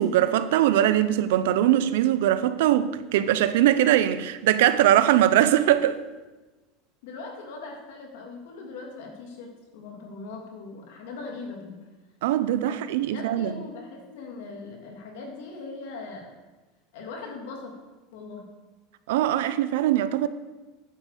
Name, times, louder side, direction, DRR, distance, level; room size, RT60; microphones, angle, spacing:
voice 1, 0.0-6.0 12.2-13.6 19.1-20.3, right 12 dB, 80° right, 0.6 m, -21 dB
voice 2, 7.0-11.8 12.7-12.8 13.1-16.3 16.9-17.7 18.1-18.4, left 4 dB, 80° left, 2.6 m, -40 dB
9.7 x 5.4 x 6.7 m
supercardioid pair, 130°, 0 cm